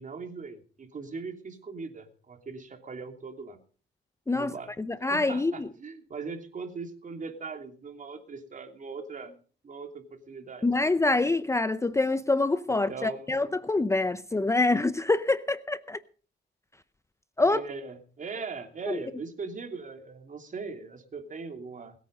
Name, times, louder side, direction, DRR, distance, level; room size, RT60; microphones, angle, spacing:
voice 1, 0.0-3.6 4.3-4.7 5.1-9.3 9.6-10.7 12.7-13.4 17.5-22.0, right 4 dB, 40° right, 3.0 m, -40 dB
voice 2, 4.3-5.7 10.6-16.0 17.4-17.6 18.9-19.0, left 2 dB, 15° left, 0.7 m, -26 dB
21.0 x 9.2 x 5.3 m
cardioid pair, 90°, 20 cm